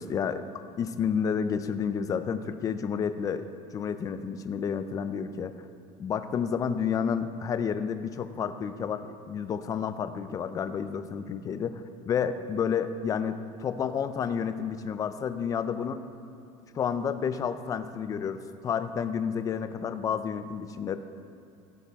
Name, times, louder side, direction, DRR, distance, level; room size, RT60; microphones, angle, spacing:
voice 1, 0.0-3.5 3.7-5.5 6.0-16.0 16.7-21.0, left 7 dB, 25° left, 10 dB, 0.4 m, -30 dB
15.5 x 7.1 x 3.5 m, 2.7 s
cardioid pair, 160°, 13 cm